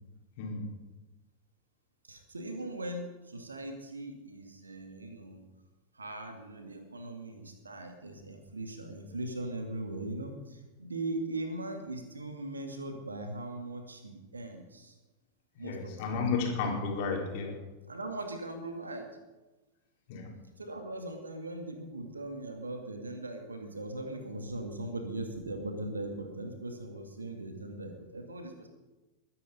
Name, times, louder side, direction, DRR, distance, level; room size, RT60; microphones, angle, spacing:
voice 1, 2.1-5.4 5.9-14.9 15.6-16.3 17.9-19.1 20.6-28.7, right 2 dB, 75° right, 5 dB, 2.2 m, -40 dB
voice 2, 15.6-17.6 20.1-20.3, left 4 dB, 45° left, 0 dB, 4.3 m, -32 dB
22.0 x 9.9 x 5.4 m, 1.1 s
figure-of-eight pair, 90°, 0 cm